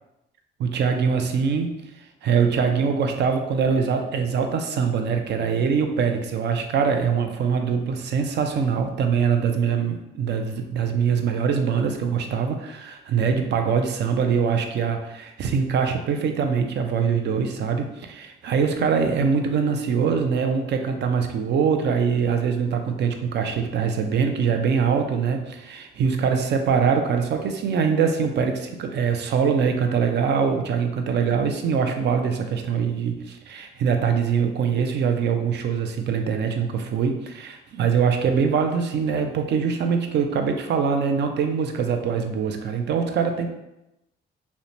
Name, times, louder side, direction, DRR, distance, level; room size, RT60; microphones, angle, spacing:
voice 1, 0.6-43.5, right 6 dB, 60° right, 5 dB, 0.4 m, -23 dB
2.9 x 2.1 x 2.5 m, 0.90 s
cardioid pair, 90°, 20 cm